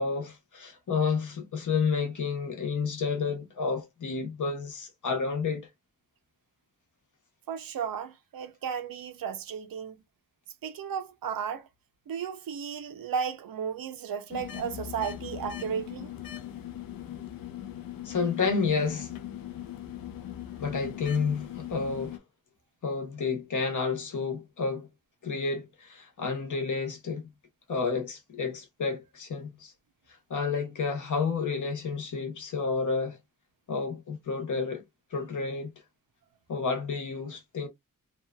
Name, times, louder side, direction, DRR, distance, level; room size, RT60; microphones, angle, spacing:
voice 1, 0.0-5.7 18.0-19.1 20.6-22.2 22.8-24.9 25.2-27.2 27.7-29.7 30.3-33.2 33.7-34.8 35.1-35.7 36.5-37.7, left 5 dB, 60° left, 0.9 m, -30 dB
voice 2, 7.5-10.0 10.6-11.7 12.1-16.1, right 7 dB, 85° right, 0.6 m, -34 dB
sound 1, 14.3-22.2, left 11 dB, 80° left, 0.5 m, -40 dB
2.7 x 2.3 x 2.2 m
wide cardioid pair, 170°, 34 cm